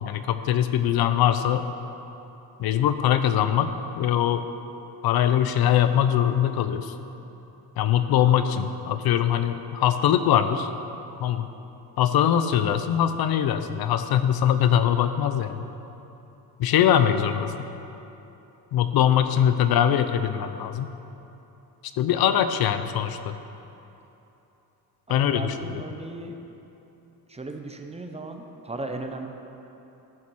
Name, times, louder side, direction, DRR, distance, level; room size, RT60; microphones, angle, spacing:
voice 1, 0.0-1.7 2.6-4.5 5.0-6.9 7.8-10.7 11.2-11.5 12.0-15.6 16.6-17.5 18.7-20.9 22.0-23.3 25.1-25.8, left 10 dB, 65° left, 10 dB, 0.6 m, -22 dB
voice 2, 25.1-26.4 27.3-29.3, right 2 dB, 15° right, 4 dB, 0.6 m, -36 dB
14.0 x 5.9 x 6.2 m, 3.0 s
cardioid pair, 140°, 40 cm